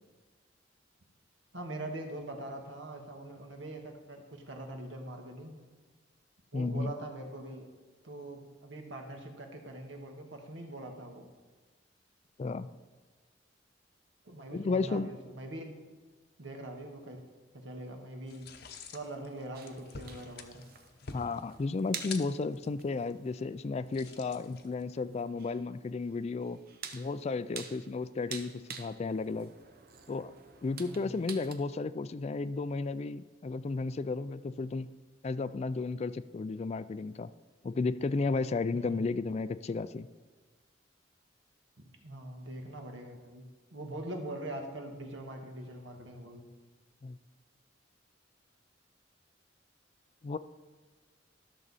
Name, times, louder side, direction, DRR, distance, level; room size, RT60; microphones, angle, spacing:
voice 1, 1.5-5.6 6.5-7.7 8.0-11.3 14.2-15.7 16.4-17.2 17.5-18.5 18.9-20.7 30.8-31.2 38.7-39.0 41.8-43.5 43.7-46.5, right 1 dB, 75° right, 2 dB, 1.5 m, -43 dB
voice 2, 6.5-6.9 12.4-12.7 14.5-15.1 21.1-26.6 26.9-29.5 30.1-30.3 30.6-34.9 35.2-37.3 37.6-40.1 47.0-47.2 50.2-50.4, left 3 dB, 35° left, 14 dB, 0.3 m, -33 dB
sound 1, 18.3-25.0, left 5 dB, 60° left, 0.8 m, -49 dB
sound 2, 19.5-31.5, right 7 dB, 55° right, 0.8 m, -49 dB
13.5 x 6.6 x 4.1 m, 1.4 s
head